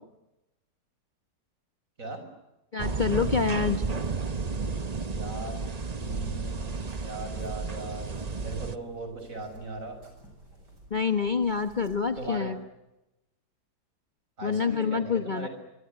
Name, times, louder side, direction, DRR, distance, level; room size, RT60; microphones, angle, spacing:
voice 1, 2.7-3.8 10.9-12.6 14.4-15.5, left 5 dB, 30° left, 8 dB, 1.1 m, -27 dB
sound 1, 2.8-8.8, right 4 dB, 30° right, 0.9 m, -32 dB
voice 2, 5.1-5.6 6.0-8.1 8.4-10.0 12.2-12.5 14.4-15.5, right 3 dB, 50° right, 6 dB, 6.9 m, -38 dB
sound 2, 6.6-12.4, right 1 dB, 80° right, 8.3 m, -53 dB
26.0 x 24.5 x 9.6 m, 0.95 s
omnidirectional pair, 1.8 m